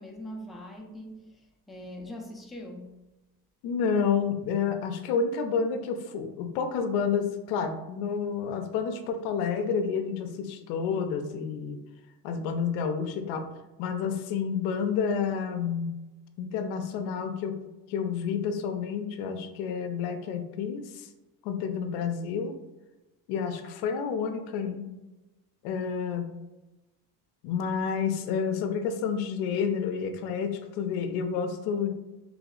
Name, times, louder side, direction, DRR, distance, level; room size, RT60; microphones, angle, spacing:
voice 1, 0.0-3.0, left 1 dB, ahead, -1 dB, 0.4 m, -42 dB
voice 2, 3.6-11.8 12.2-13.5 13.8-15.9 16.4-17.6 17.9-21.1 21.4-22.5 23.3-24.8 25.6-26.3 27.4-32.0, left 6 dB, 90° left, 8 dB, 0.5 m, -29 dB
3.1 x 2.0 x 3.7 m, 1.1 s
cardioid pair, 110°, 38 cm